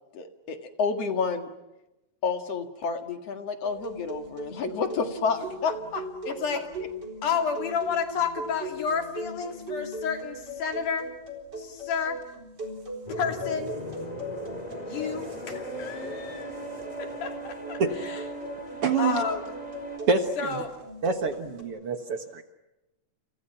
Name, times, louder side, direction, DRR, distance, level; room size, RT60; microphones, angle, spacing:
voice 1, 0.1-1.5 2.2-6.0 6.8-6.9, left 5 dB, 55° left, 6 dB, 2.7 m, -30 dB
sound 1, 3.6-21.6, equal, 30° right, 4.6 m, -39 dB
voice 2, 6.3-6.6 7.2-11.1 11.6-12.2 13.2-13.7 14.8-16.5 17.0-18.2 19.0-19.5 20.4-20.7, left 6 dB, 75° left, 4 dB, 4.3 m, -31 dB
sound 2, 13.1-20.0, right 1 dB, 10° left, 3.2 m, -38 dB
voice 3, 18.8-19.2 20.1-20.6 21.0-22.4, right 4 dB, 55° right, 7 dB, 2.1 m, -26 dB
30.0 x 29.0 x 5.8 m, 0.96 s
omnidirectional pair, 3.6 m